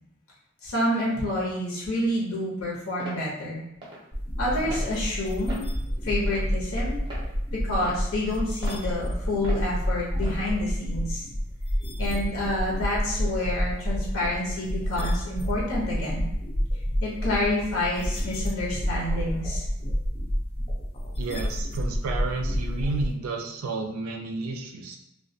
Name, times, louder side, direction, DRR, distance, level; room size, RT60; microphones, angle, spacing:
voice 1, 0.6-3.6 4.4-5.6 6.0-7.0 7.6-11.2 12.0-16.3 17.0-19.7, left 1 dB, 70° left, -5 dB, 0.8 m, -28 dB
sound 1, 3.0-3.2 3.8-4.0 4.6-4.9 5.5-5.7 6.3-6.6 7.1-7.2 7.8-8.0 8.6-8.8 9.4-9.6 10.2-10.4, right 1 dB, 25° right, 0.6 m, -39 dB
sound 2, 4.1-23.1, equal, 25° left, 0.4 m, -29 dB
voice 2, 21.2-25.0, right 3 dB, 75° right, 3 dB, 0.4 m, -31 dB
2.2 x 2.2 x 2.6 m, 0.83 s
head